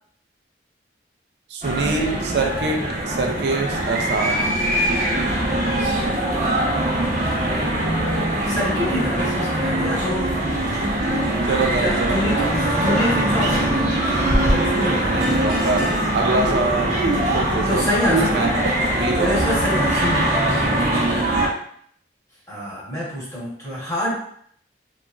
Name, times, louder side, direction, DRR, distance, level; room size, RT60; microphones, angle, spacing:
voice 1, 1.5-4.4 11.4-12.5 15.1-17.0 17.3-17.9 18.3-18.5 18.9-19.4, right 3 dB, 65° right, 3 dB, 0.4 m, -24 dB
sound 1, 1.6-21.5, right 1 dB, 45° right, 0.7 m, -22 dB
voice 2, 5.5-6.3 7.6-10.3 11.3-12.5 12.8-14.2 14.5-15.3 17.6-18.7 19.2-21.2 22.5-24.2, left 1 dB, 15° left, -8 dB, 1.0 m, -27 dB
2.9 x 2.3 x 2.4 m, 0.63 s
head